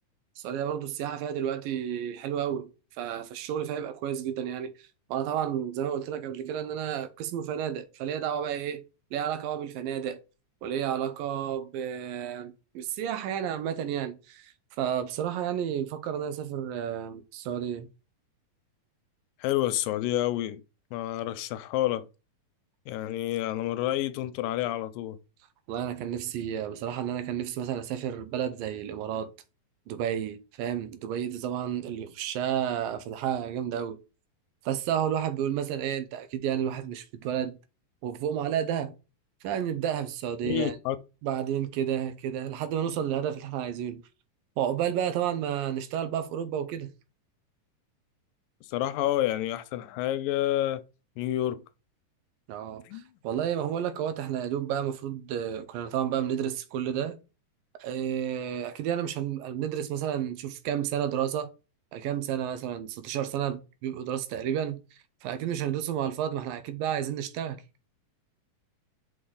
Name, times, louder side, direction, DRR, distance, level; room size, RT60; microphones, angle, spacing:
voice 1, 0.4-2.7 3.0-8.8 9.1-10.2 10.6-17.9 25.7-29.3 29.9-34.0 34.7-37.6 38.0-38.9 39.4-40.8 41.2-44.0 44.6-46.9 52.5-57.2 57.8-61.5 61.9-67.6, right 9 dB, 85° right, 2.6 m, -31 dB
voice 2, 19.4-20.6 20.9-22.1 22.9-25.2 40.4-41.0 48.7-50.8 51.2-51.6 52.9-53.1, left 13 dB, 85° left, 2.4 m, -29 dB
6.1 x 4.8 x 3.9 m
omnidirectional pair, 3.9 m